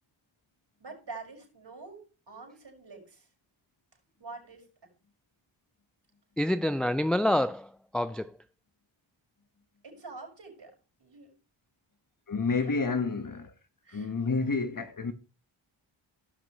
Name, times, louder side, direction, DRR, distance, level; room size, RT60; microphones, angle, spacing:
voice 1, 0.8-3.3 4.2-4.9 9.8-11.3 12.5-12.8 13.8-14.1, right 3 dB, 55° right, 5.9 m, -46 dB
voice 2, 6.4-8.3, left 1 dB, ahead, 0.4 m, -27 dB
voice 3, 12.3-13.5 13.9-15.1, left 4 dB, 40° left, 1.5 m, -29 dB
18.0 x 6.0 x 3.2 m
supercardioid pair, 45°, 49 cm